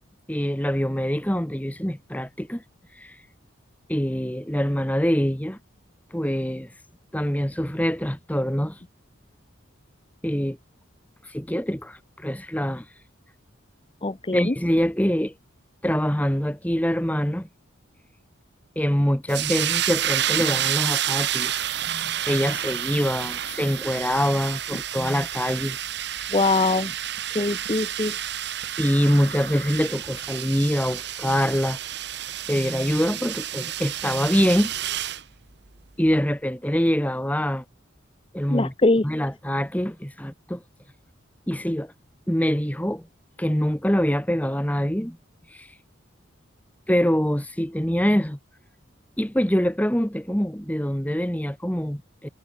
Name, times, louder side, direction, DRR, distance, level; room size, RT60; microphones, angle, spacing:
voice 1, 0.3-2.6 3.0-3.1 3.9-5.6 6.1-6.7 7.1-8.8 10.2-10.6 11.3-12.8 14.3-15.3 15.8-17.5 18.8-21.5 21.8-25.8 28.8-31.8 32.5-34.7 36.0-37.6 38.3-38.7 39.0-40.6 41.5-41.9 42.3-43.0 43.4-45.2 45.5-45.7 46.9-48.4 49.2-52.3, equal, 5° left, 1.7 m, -24 dB
voice 2, 14.0-14.5 26.3-26.9 27.3-28.1 38.5-39.0, left 2 dB, 25° left, 0.6 m, -22 dB
sound 1, 19.3-35.2, right 11 dB, 55° right, 1.4 m, -29 dB
head